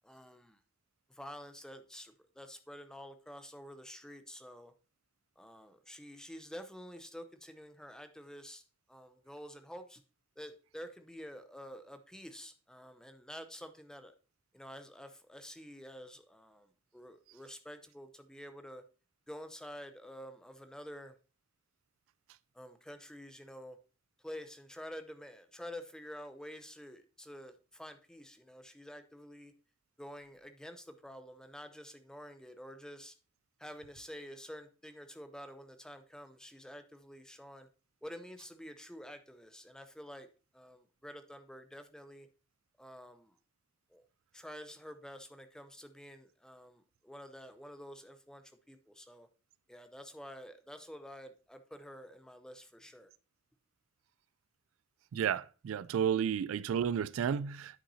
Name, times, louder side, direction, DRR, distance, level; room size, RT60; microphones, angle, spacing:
voice 1, 0.0-0.6 1.1-4.7 5.4-8.6 8.9-10.0 10.4-14.1 14.5-16.7 16.9-18.8 19.3-21.1 22.5-23.8 24.2-29.5 30.0-33.1 33.6-37.7 38.0-40.3 40.5-42.3 42.8-43.3 43.9-44.0 44.3-49.3 49.7-53.1, equal, 5° left, 0.6 m, -49 dB
voice 2, 55.1-57.8, right 8 dB, 85° right, 0.3 m, -32 dB
10.0 x 5.7 x 2.7 m
head